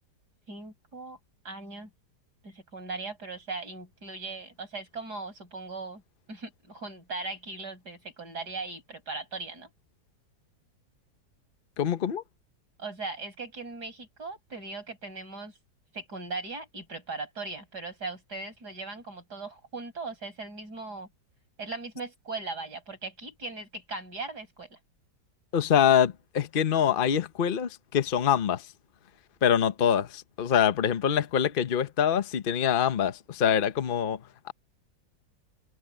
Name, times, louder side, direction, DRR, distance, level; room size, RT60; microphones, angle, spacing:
voice 1, 0.5-1.2 1.4-1.9 2.4-6.0 6.3-9.7 12.8-15.5 15.9-21.1 21.6-24.8, right 3 dB, 65° right, 7.7 m, -39 dB
voice 2, 11.8-12.2 25.5-28.7 29.4-34.2 34.4-34.5, left 8 dB, 40° left, 0.9 m, -25 dB
omnidirectional pair, 1.9 m